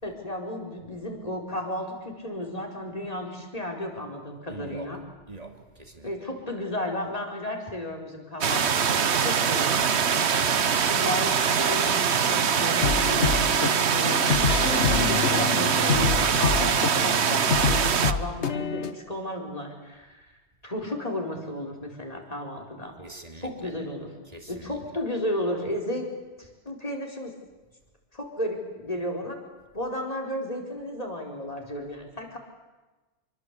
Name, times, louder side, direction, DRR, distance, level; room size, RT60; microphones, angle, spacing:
voice 1, 0.0-5.0 6.0-10.5 10.9-14.2 14.9-20.2 20.6-22.9 23.4-24.1 24.5-26.1 26.4-27.3 28.1-29.3 29.7-32.4, left 1 dB, 35° left, 1 dB, 4.8 m, -33 dB
voice 2, 4.5-5.0 5.3-6.1 23.0-23.7 24.3-24.8, right 3 dB, 35° right, 4 dB, 3.1 m, -43 dB
sound 1, 8.4-18.1, right 7 dB, 75° right, 1.3 m, -23 dB
sound 2, 12.8-18.9, left 6 dB, 90° left, 1.5 m, -27 dB
27.0 x 24.0 x 8.4 m, 1.2 s
omnidirectional pair, 1.1 m